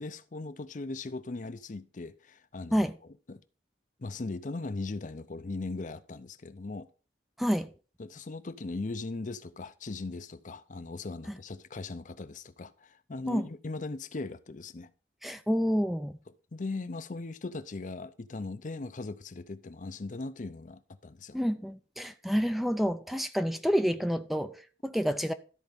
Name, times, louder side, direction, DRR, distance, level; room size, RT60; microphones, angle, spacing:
voice 1, 0.0-2.8 3.3-3.4 4.0-6.9 8.0-14.9 16.5-21.4, left 3 dB, 45° left, 0.6 m, -39 dB
voice 2, 7.4-7.7 13.3-13.5 15.2-16.2 21.3-25.3, equal, ahead, 0.4 m, -29 dB
13.0 x 4.5 x 5.2 m
head